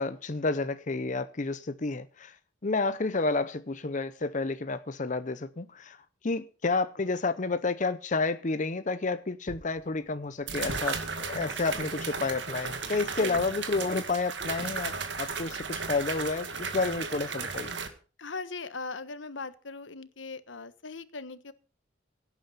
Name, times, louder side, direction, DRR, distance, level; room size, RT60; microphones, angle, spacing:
voice 1, 0.0-2.4 2.6-6.0 6.2-17.8, left 3 dB, 40° left, 0.7 m, -30 dB
sound 1, 9.5-9.6 10.5-17.9, right 5 dB, 65° right, 2.2 m, -35 dB
voice 2, 18.2-21.5, left 4 dB, 80° left, 1.3 m, -39 dB
17.5 x 9.0 x 5.7 m
head